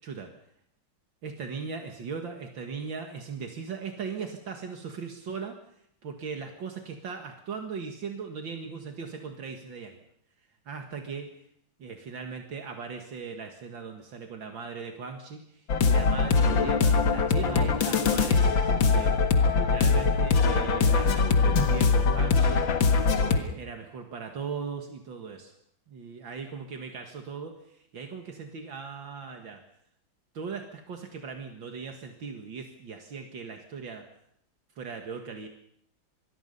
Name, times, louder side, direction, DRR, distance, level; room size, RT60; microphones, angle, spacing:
voice 1, 1.2-5.6 6.0-10.0 10.7-11.3 11.8-19.1 19.6-22.7 23.2-25.5 25.9-29.6 30.3-34.1 34.8-35.5, right 5 dB, 75° right, 4 dB, 2.5 m, -38 dB
sound 1, 15.7-23.4, left 4 dB, 75° left, 2.4 m, -22 dB
26.0 x 21.5 x 5.5 m, 0.69 s
omnidirectional pair, 2.1 m